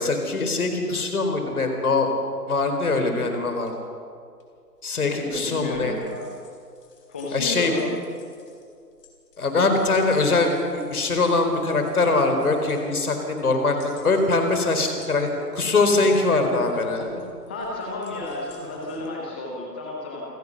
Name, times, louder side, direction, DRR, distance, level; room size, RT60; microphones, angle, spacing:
voice 1, 0.0-2.1 2.5-3.7 4.8-6.0 7.3-7.7 9.4-17.2, left 3 dB, 60° left, 5 dB, 4.3 m, -22 dB
sound 1, 2.9-3.0 3.5-3.7 4.4-4.5 5.3-19.1, left 3 dB, 35° left, 3.9 m, -44 dB
voice 2, 5.2-6.3 7.1-7.9 17.5-20.2, left 2 dB, 5° left, -2 dB, 0.7 m, -32 dB
28.0 x 15.0 x 6.9 m, 2.3 s
figure-of-eight pair, 140°, 49 cm